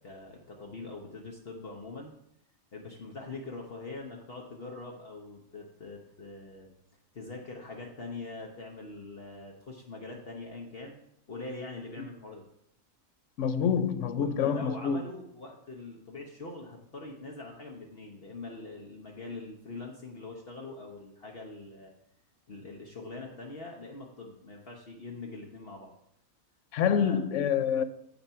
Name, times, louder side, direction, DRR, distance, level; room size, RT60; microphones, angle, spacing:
voice 1, 0.0-2.1 2.7-6.7 7.1-11.0 11.3-12.4 14.1-21.9 22.5-25.9 26.9-27.2, left 3 dB, 50° left, 1.2 m, -43 dB
voice 2, 13.4-15.0 26.7-27.8, left 7 dB, 70° left, 0.9 m, -27 dB
7.2 x 6.6 x 5.6 m
omnidirectional pair, 1.4 m